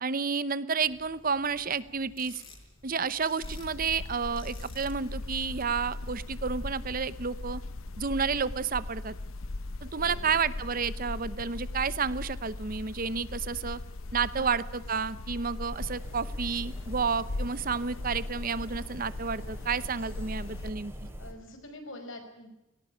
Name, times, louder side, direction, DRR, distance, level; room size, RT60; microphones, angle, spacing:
voice 1, 0.0-2.4 2.8-7.6 8.0-9.1 9.8-13.8 14.1-20.9, right 5 dB, 45° right, 17 dB, 0.8 m, -31 dB
sound 1, 0.8-6.6, left 2 dB, 25° left, 5.4 m, -53 dB
sound 2, 3.4-20.7, left 2 dB, 90° left, 0.9 m, -39 dB
voice 2, 9.9-10.3 14.3-14.5 21.2-22.5, left 1 dB, 75° left, 6 dB, 5.2 m, -45 dB
sound 3, 15.7-21.3, equal, 10° right, 4.3 m, -43 dB
19.0 x 18.5 x 9.8 m, 0.94 s
head